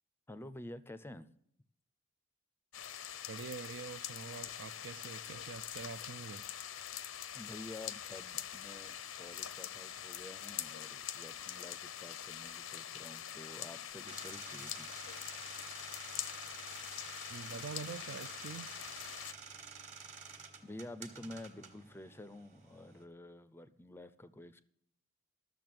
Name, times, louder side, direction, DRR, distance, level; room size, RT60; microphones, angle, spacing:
voice 1, 0.3-1.3 7.3-14.9 20.6-24.6, left 1 dB, 10° left, 0.4 m, -50 dB
sound 1, 2.7-19.3, left 10 dB, 90° left, 0.7 m, -44 dB
voice 2, 3.3-6.4 17.3-18.7, right 5 dB, 70° right, 0.4 m, -45 dB
sound 2, 14.0-23.0, right 5 dB, 35° right, 1.4 m, -51 dB
12.0 x 6.8 x 7.6 m
head